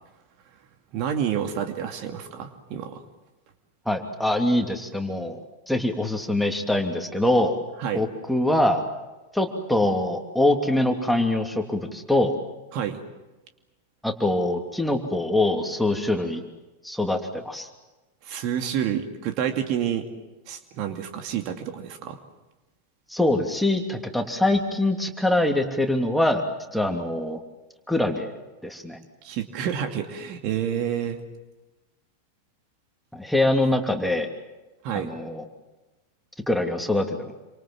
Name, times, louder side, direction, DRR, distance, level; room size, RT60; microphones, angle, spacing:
voice 1, 0.9-3.0 7.8-8.0 12.7-13.0 18.2-20.0 20.5-22.2 29.2-31.2 34.8-35.1, right 9 dB, 45° right, 6 dB, 2.5 m, -29 dB
voice 2, 3.9-5.4 5.7-7.6 7.9-8.8 9.3-12.4 14.0-16.4 16.8-17.7 23.1-26.4 26.7-27.4 27.9-28.3 28.6-29.0 33.1-34.3 34.9-35.4 36.5-37.3, left 1 dB, ahead, 3 dB, 2.9 m, -24 dB
28.0 x 25.5 x 7.6 m, 1.1 s
figure-of-eight pair, 90°, 0 cm